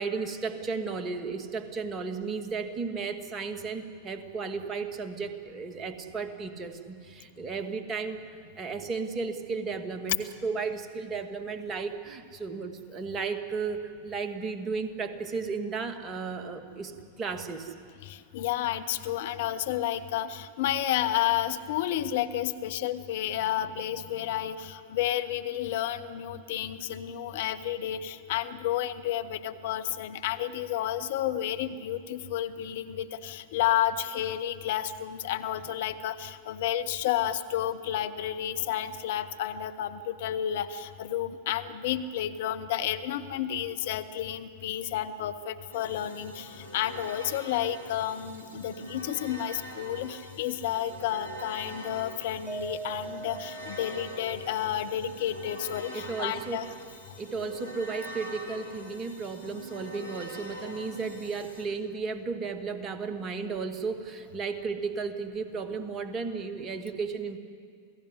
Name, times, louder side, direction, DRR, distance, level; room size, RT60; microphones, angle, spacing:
voice 1, 0.0-8.2 8.6-16.9 17.2-17.7 55.9-56.7 57.2-67.4, right 4 dB, 25° right, 7 dB, 2.3 m, -34 dB
voice 2, 18.0-56.7, left 11 dB, 55° left, 10 dB, 1.1 m, -31 dB
sound 1, 45.7-61.7, equal, 85° left, 3.8 m, -44 dB
Mallet percussion, 52.5-54.7, right 4 dB, 5° right, 0.5 m, -41 dB
27.5 x 17.5 x 9.8 m, 2.2 s
figure-of-eight pair, 90°, 0 cm